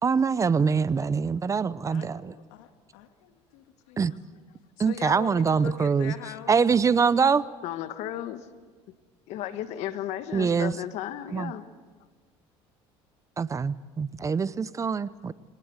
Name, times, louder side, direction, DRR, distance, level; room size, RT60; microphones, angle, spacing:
voice 1, 0.0-2.3 4.0-4.1 4.8-6.1 6.5-7.4 10.3-10.7 11.3-11.5 13.4-15.3, right 5 dB, 25° right, 17 dB, 0.7 m, -24 dB
voice 2, 1.9-4.1 4.8-6.5, left 12 dB, 90° left, 8 dB, 1.8 m, -42 dB
voice 3, 7.6-8.5 9.3-11.6, left 12 dB, 70° left, 10 dB, 1.6 m, -34 dB
23.0 x 19.0 x 8.0 m, 1.5 s
supercardioid pair, 95°, 12 cm